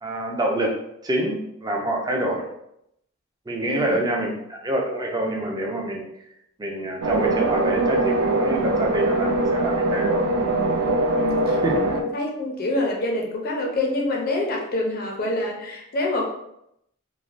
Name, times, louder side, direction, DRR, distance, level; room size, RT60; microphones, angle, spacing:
voice 1, 0.0-0.8 1.0-2.5 3.5-6.0 6.6-10.4 11.6-11.8, right 1 dB, 20° right, -1 dB, 0.4 m, -26 dB
voice 2, 3.7-4.3 10.4-10.8 11.1-16.3, left 2 dB, 45° left, 0 dB, 0.5 m, -27 dB
sound 1, 7.0-12.0, right 2 dB, 85° right, 0.4 m, -22 dB
3.1 x 2.1 x 2.5 m, 0.78 s
head